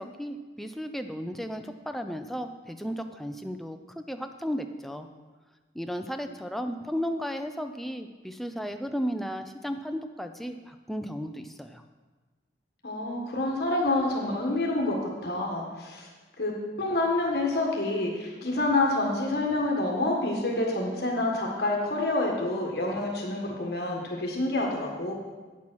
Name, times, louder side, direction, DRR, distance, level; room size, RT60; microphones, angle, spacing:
voice 1, 0.0-5.1 5.7-11.8, equal, ahead, 6 dB, 0.5 m, -34 dB
voice 2, 12.8-16.1 16.4-16.5 16.8-25.1, left 2 dB, 60° left, -1 dB, 1.6 m, -27 dB
9.0 x 7.3 x 6.2 m, 1.3 s
head